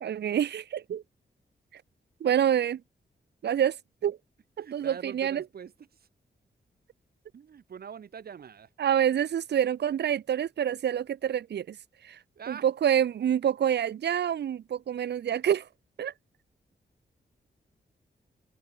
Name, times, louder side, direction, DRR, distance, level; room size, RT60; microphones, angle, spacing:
voice 1, 0.0-1.0 2.2-2.8 3.4-3.8 4.0-4.2 4.6-5.4 8.8-11.8 12.0-12.2 12.5-15.7 16.0-16.1, right 9 dB, 90° right, 1.3 m, -27 dB
voice 2, 4.6-6.1 7.3-8.7 12.3-12.7, right 7 dB, 65° right, 5.1 m, -44 dB
wide cardioid pair, 155°, 17 cm